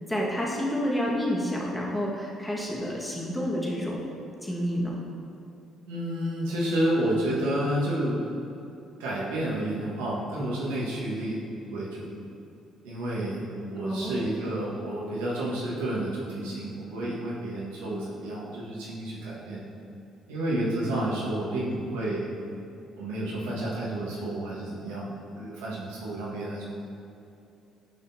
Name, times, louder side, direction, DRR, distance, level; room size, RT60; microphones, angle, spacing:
voice 1, 0.1-4.1 4.4-4.9 13.8-14.3, equal, 10° left, -3 dB, 1.6 m, -29 dB
voice 2, 5.9-8.3 9.0-11.4 11.7-12.1 12.8-13.4 13.7-19.6 20.3-22.3 23.0-26.6, right 1 dB, 80° right, -7 dB, 1.6 m, -30 dB
9.5 x 5.7 x 2.8 m, 2.7 s
hypercardioid pair, 50°, 0 cm